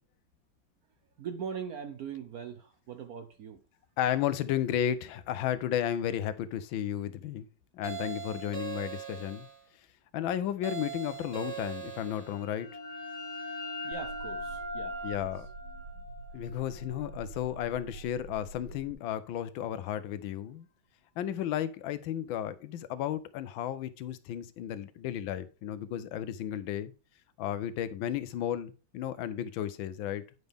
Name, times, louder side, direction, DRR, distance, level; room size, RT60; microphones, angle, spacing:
voice 1, 1.2-3.6 13.8-15.3, right 7 dB, 65° right, 0.9 m, -41 dB
voice 2, 4.0-7.5 7.7-9.5 10.1-12.7 15.0-15.5 16.3-20.7 21.2-26.9 27.4-30.2, left 10 dB, 80° left, 1.4 m, -33 dB
sound 1, 7.8-9.6 10.6-12.4, right 9 dB, 25° right, 0.9 m, -40 dB
sound 2, 12.2-17.6, left 1 dB, 40° left, 1.5 m, -41 dB
sound 3, 13.9-18.9, right 3 dB, 90° right, 1.4 m, -46 dB
9.2 x 5.4 x 3.4 m
omnidirectional pair, 2.2 m